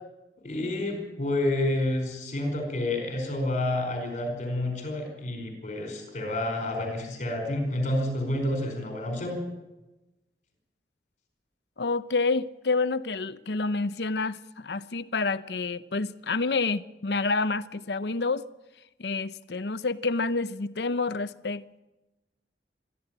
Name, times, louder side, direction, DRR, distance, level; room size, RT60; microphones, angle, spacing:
voice 1, 0.4-9.4, left 1 dB, 40° left, 4.7 m, -29 dB
voice 2, 11.8-18.4 19.0-21.8, left 3 dB, 65° left, 0.8 m, -28 dB
22.5 x 14.0 x 8.9 m
head